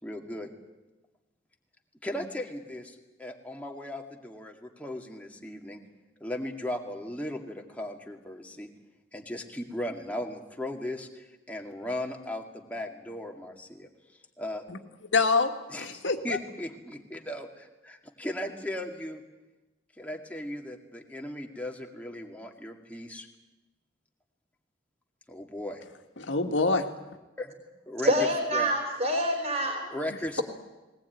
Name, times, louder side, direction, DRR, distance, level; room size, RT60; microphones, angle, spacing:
voice 1, 0.0-0.5 2.0-5.8 6.2-8.7 9.1-13.9 14.4-14.6 15.7-19.2 20.0-23.3 25.3-25.8 27.4-27.6 27.9-28.1 28.5-28.7 29.9-30.4, left 1 dB, 10° left, 2.1 m, -37 dB
voice 2, 15.1-16.4 26.2-26.9, left 3 dB, 85° left, 1.9 m, -26 dB
voice 3, 28.0-29.9, equal, 40° right, 4.0 m, -26 dB
20.5 x 19.0 x 9.3 m
head